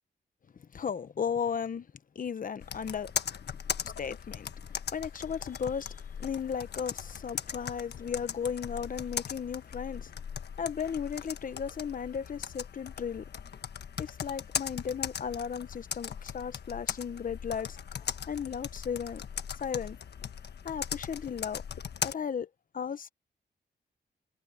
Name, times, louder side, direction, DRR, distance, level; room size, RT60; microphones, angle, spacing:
voice 1, 0.7-1.9 2.1-3.1 3.4-3.5 3.8-10.1 10.6-13.2 14.0-19.3 19.6-20.0 20.6-21.6 22.0-22.5 22.7-23.1, left 7 dB, 50° left, 1.0 m, -35 dB
Computer keyboard, 2.6-22.1, left 7 dB, 70° left, 1.4 m, -39 dB
wide cardioid pair, 120°, 18 cm